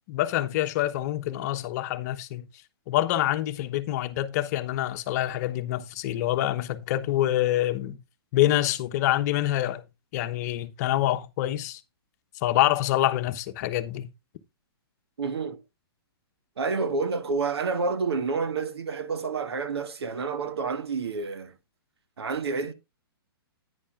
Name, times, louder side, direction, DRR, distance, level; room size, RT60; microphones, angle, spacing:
voice 1, 0.1-2.5 2.9-8.0 8.3-9.8 10.1-11.8 12.4-14.1, left 14 dB, 40° left, 1.0 m, -26 dB
voice 2, 15.2-15.6 16.6-21.5 22.2-22.7, right 4 dB, 85° right, 1.4 m, -29 dB
10.0 x 9.7 x 2.4 m
hypercardioid pair, 140°, 13 cm